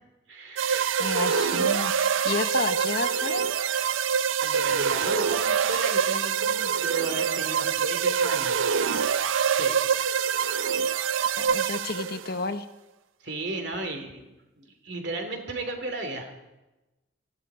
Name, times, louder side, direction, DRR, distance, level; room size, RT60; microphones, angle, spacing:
voice 1, 0.3-1.1 4.4-8.6 9.6-10.6 13.2-16.3, right 2 dB, 55° right, 5 dB, 2.7 m, -35 dB
sound 1, 0.6-12.3, right 7 dB, 80° right, 0.5 m, -25 dB
voice 2, 1.0-3.4 11.4-12.7, left 3 dB, 50° left, 10 dB, 0.8 m, -31 dB
19.0 x 15.5 x 4.9 m, 1.0 s
head